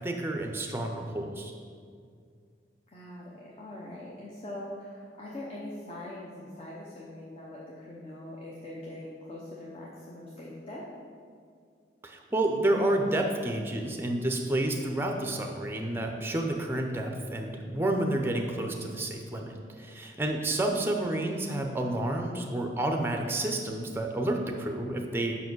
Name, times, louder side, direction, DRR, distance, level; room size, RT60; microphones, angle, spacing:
voice 1, 0.0-1.5 12.0-25.3, right 1 dB, 10° right, 2 dB, 0.5 m, -30 dB
voice 2, 2.9-10.9, left 1 dB, 30° left, -5 dB, 0.8 m, -42 dB
5.6 x 4.8 x 6.2 m, 2.2 s
head